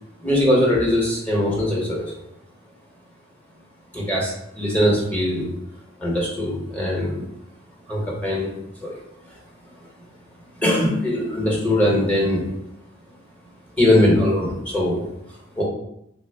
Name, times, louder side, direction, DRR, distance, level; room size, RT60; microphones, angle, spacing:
voice 1, 0.2-2.2 3.9-5.5 6.0-7.3 7.9-9.4 9.8-9.9 10.6-12.5 13.8-15.6, left 1 dB, 10° left, -4 dB, 0.9 m, -21 dB
3.4 x 2.0 x 3.3 m, 0.79 s
head